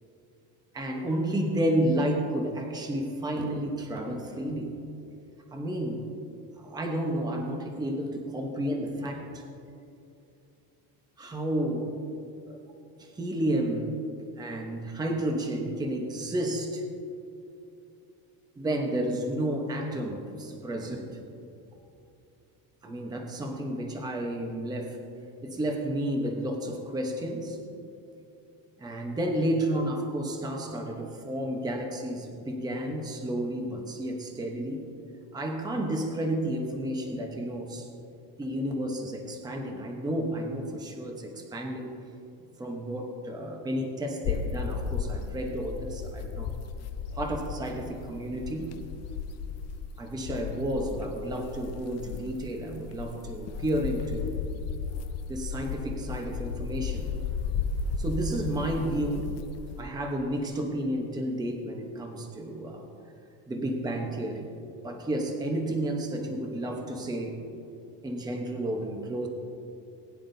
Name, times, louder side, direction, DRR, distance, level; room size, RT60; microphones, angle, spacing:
voice 1, 0.7-4.7 5.5-6.1 6.6-9.4 11.2-11.9 12.5-12.6 13.0-13.9 14.4-16.8 18.6-21.1 22.8-25.0 25.4-27.6 28.8-34.8 35.3-37.9 38.4-41.9 42.6-46.5 47.1-48.7 50.0-54.4 55.3-57.1 58.0-59.3 59.8-62.8 63.5-64.5 64.8-67.4 68.0-69.3, right 1 dB, 10° right, 2 dB, 0.9 m, -31 dB
sound 1, 44.2-59.8, left 5 dB, 35° left, 0.5 m, -35 dB
20.5 x 9.8 x 2.7 m, 2.8 s
cardioid pair, 165°, 48 cm